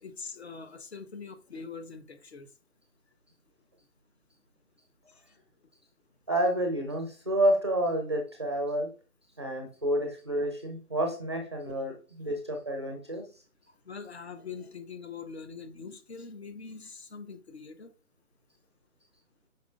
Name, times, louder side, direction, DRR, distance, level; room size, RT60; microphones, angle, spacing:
voice 1, 0.0-2.5 5.0-5.2 11.7-11.8 13.7-17.9, left 5 dB, 45° left, 0.8 m, -43 dB
voice 2, 6.3-8.9 9.4-11.9 12.2-13.3, right 1 dB, 20° right, 0.6 m, -29 dB
8.0 x 5.2 x 2.4 m
figure-of-eight pair, 145°, 44 cm